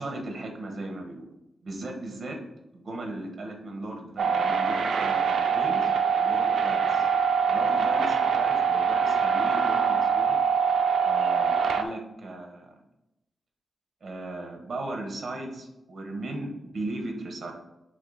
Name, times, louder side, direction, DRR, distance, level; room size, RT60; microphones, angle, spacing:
voice 1, 0.0-1.3 1.6-2.4 2.7-7.0 7.5-10.4 11.0-12.7 14.0-17.5, right 2 dB, 40° right, 3 dB, 1.4 m, -37 dB
sound 1, 4.2-11.8, right 5 dB, 65° right, 0.6 m, -24 dB
9.2 x 3.5 x 4.1 m, 0.89 s
wide cardioid pair, 175°, 0 cm